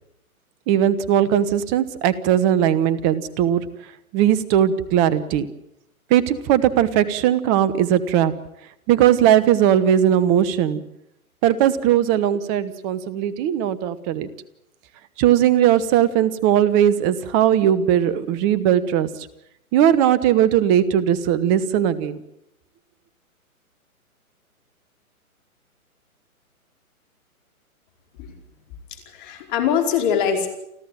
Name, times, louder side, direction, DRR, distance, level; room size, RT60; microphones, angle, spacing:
voice 1, 0.7-3.7 4.1-5.5 6.1-8.3 8.9-10.8 11.4-14.3 15.2-19.1 19.7-22.2, right 10 dB, 20° right, 17 dB, 1.1 m, -18 dB
voice 2, 29.1-30.5, left 8 dB, 35° left, 4 dB, 4.8 m, -22 dB
29.5 x 12.5 x 8.9 m, 0.81 s
figure-of-eight pair, 130°, 43 cm